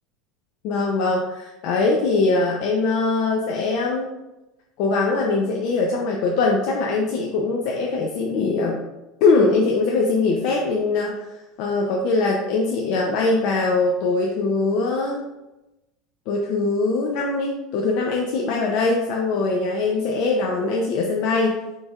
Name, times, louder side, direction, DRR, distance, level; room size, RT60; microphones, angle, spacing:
voice 1, 0.6-4.1 4.8-8.8 9.2-15.2 16.3-21.6, left 3 dB, 55° left, 0 dB, 0.5 m, -22 dB
6.3 x 3.2 x 2.4 m, 1.0 s
supercardioid pair, 150°, 0 cm